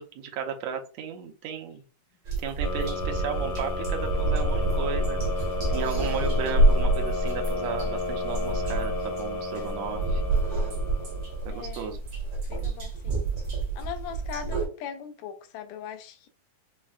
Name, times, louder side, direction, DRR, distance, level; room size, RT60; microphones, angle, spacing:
voice 1, 0.0-1.8 2.4-5.2 5.7-10.2 11.5-12.0, right 7 dB, 80° right, 1.7 m, -34 dB
sound 1, 2.2-14.7, right 2 dB, 55° right, 1.0 m, -28 dB
sound 2, 2.6-11.5, left 2 dB, 70° left, 1.3 m, -33 dB
voice 2, 5.6-6.1 11.5-11.9 12.5-13.3 13.8-16.3, left 7 dB, 85° left, 2.2 m, -40 dB
5.4 x 2.1 x 2.4 m
omnidirectional pair, 3.6 m